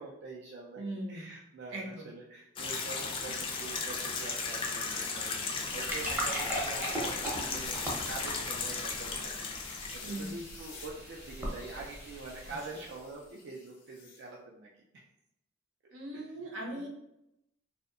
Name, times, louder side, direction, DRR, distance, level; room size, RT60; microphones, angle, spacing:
voice 1, 0.0-15.0 16.1-16.3 16.7-16.9, right 3 dB, 60° right, -2 dB, 0.3 m, -45 dB
voice 2, 0.8-1.3 1.7-2.1 10.0-10.3 12.5-12.6 15.9-16.9, right 1 dB, 90° right, -1 dB, 0.7 m, -39 dB
sound 1, 2.6-10.3, left 4 dB, 25° left, 0.3 m, -36 dB
sound 2, 5.5-13.0, right 1 dB, 10° right, 0.6 m, -39 dB
sound 3, 7.7-14.2, left 4 dB, 80° left, 0.5 m, -51 dB
2.6 x 2.1 x 2.5 m, 0.83 s
head